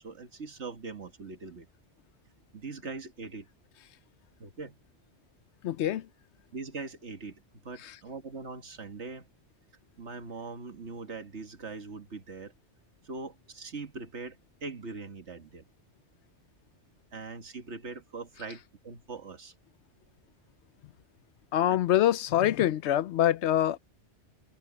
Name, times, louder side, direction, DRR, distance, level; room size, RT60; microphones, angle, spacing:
voice 1, 0.0-1.7 2.5-3.5 4.4-4.8 6.5-9.3 10.0-12.5 13.0-15.6 17.1-19.5 21.7-21.8, right 4 dB, 75° right, 2.1 m, -41 dB
voice 2, 5.6-6.0 21.5-23.8, left 12 dB, 75° left, 0.9 m, -25 dB
omnidirectional pair, 1.2 m